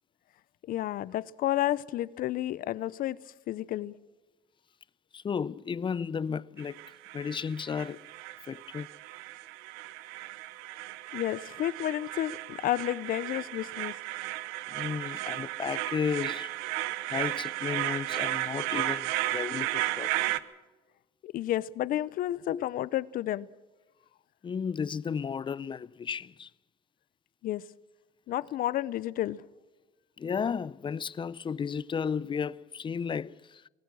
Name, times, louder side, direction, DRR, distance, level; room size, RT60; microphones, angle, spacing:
voice 1, 0.7-3.2 3.5-3.9 11.1-13.9 21.2-23.5 27.4-27.6 28.3-29.4, left 13 dB, 60° left, 0.8 m, -31 dB
voice 2, 5.1-6.8 7.1-8.1 8.4-8.9 14.7-16.5 17.1-20.4 22.5-22.7 24.4-26.5 30.2-33.6, left 6 dB, 30° left, 0.6 m, -34 dB
sound 1, 6.6-20.4, right 17 dB, 85° right, 0.9 m, -34 dB
24.5 x 18.5 x 6.3 m
supercardioid pair, 80°, 16 cm